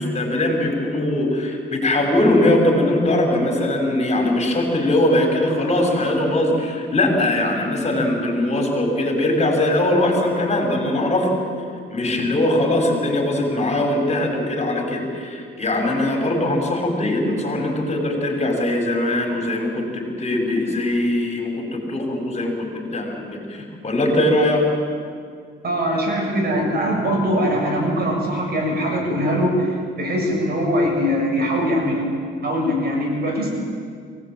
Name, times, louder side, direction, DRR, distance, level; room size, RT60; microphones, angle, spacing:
voice 1, 0.0-11.4 11.9-24.7, left 1 dB, 35° left, 1 dB, 5.7 m, -21 dB
voice 2, 25.6-32.0 32.4-33.5, equal, 55° right, 0 dB, 7.2 m, -22 dB
24.0 x 18.0 x 8.9 m, 2.1 s
cardioid pair, 90°, 20 cm